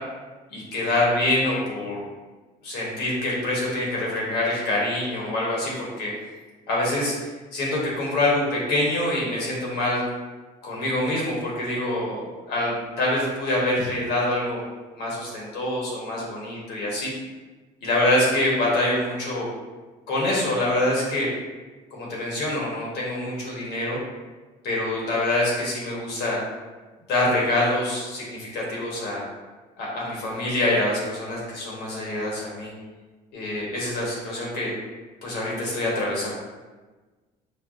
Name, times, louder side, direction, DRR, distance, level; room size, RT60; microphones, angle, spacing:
voice 1, 0.5-2.0 2.6-6.1 6.7-7.1 7.5-10.0 10.6-14.6 14.9-17.1 17.8-19.5 20.1-21.3 21.9-24.0 24.6-26.4 27.1-29.2 29.8-32.7 33.3-34.7 35.2-36.3, left 1 dB, 80° left, -4 dB, 1.2 m, -25 dB
4.4 x 2.1 x 2.5 m, 1.3 s
cardioid pair, 110°, 17 cm